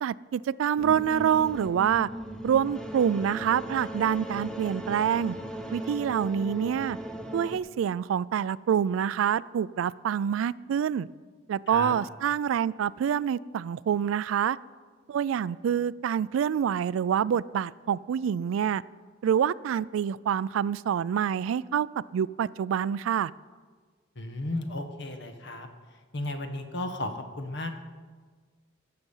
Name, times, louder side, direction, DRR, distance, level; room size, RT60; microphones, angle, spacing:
voice 1, 0.0-2.1 2.4-5.3 5.7-7.0 7.3-11.1 11.5-14.6 15.1-18.8 19.2-21.9 22.1-23.3, right 8 dB, 90° right, 21 dB, 0.3 m, -26 dB
sound 1, 0.8-7.6, equal, 5° left, 0.8 m, -38 dB
voice 2, 24.2-25.7 26.1-27.7, left 2 dB, 65° left, 7 dB, 1.1 m, -34 dB
15.0 x 6.7 x 5.5 m, 1.5 s
head